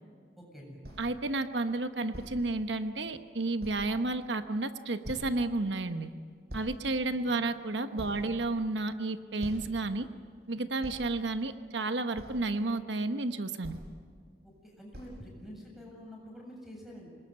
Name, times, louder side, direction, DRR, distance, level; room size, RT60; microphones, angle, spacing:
voice 1, 0.4-0.8 7.9-8.2 14.4-17.1, equal, ahead, -1 dB, 7.8 m, -48 dB
sound 1, 0.8-1.1 2.1-2.4 3.1-3.2 3.6-3.9 5.0-5.4 6.5-6.7 7.4-7.5 8.0-8.8 9.4-9.8 10.8-11.0 12.1-12.4 13.6-13.9 14.9-15.2, equal, 60° right, 6.4 m, -44 dB
voice 2, 1.0-6.1 6.5-10.1 10.5-13.8, right 2 dB, 85° right, 9 dB, 1.1 m, -31 dB
26.0 x 21.0 x 9.6 m, 2.1 s
head